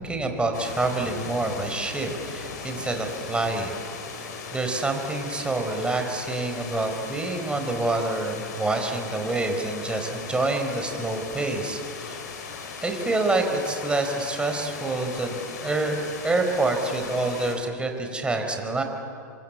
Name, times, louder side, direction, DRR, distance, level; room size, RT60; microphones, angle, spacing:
voice 1, 0.0-3.7 4.1-12.2 12.8-16.0 16.2-18.8, right 2 dB, 10° right, 4 dB, 4.3 m, -27 dB
sound 1, 0.5-17.6, left 5 dB, 65° left, 5.4 m, -38 dB
28.5 x 24.5 x 8.4 m, 2.6 s
hypercardioid pair, 105°, 10 cm